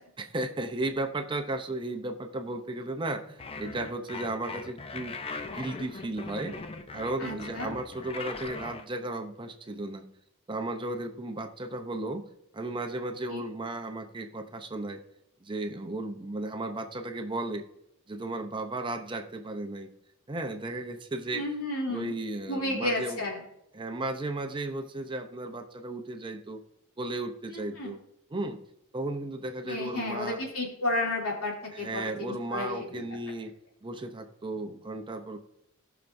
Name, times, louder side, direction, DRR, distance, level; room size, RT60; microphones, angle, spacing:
voice 1, 0.2-5.1 5.4-6.6 6.9-10.1 10.5-12.3 12.5-15.0 15.4-17.6 18.1-19.9 20.3-21.5 21.9-23.2 23.7-26.6 27.0-28.0 28.3-28.6 28.9-30.4 31.7-33.5 33.8-35.4, right 2 dB, 25° right, 6 dB, 0.6 m, -35 dB
sound 1, 3.4-8.8, left 3 dB, 25° left, 0.6 m, -40 dB
voice 2, 7.2-7.7 13.3-13.4 21.3-22.1 22.5-23.4 27.5-27.9 29.6-33.0, left 2 dB, 75° left, -2 dB, 2.8 m, -32 dB
17.5 x 5.8 x 2.6 m, 0.78 s
head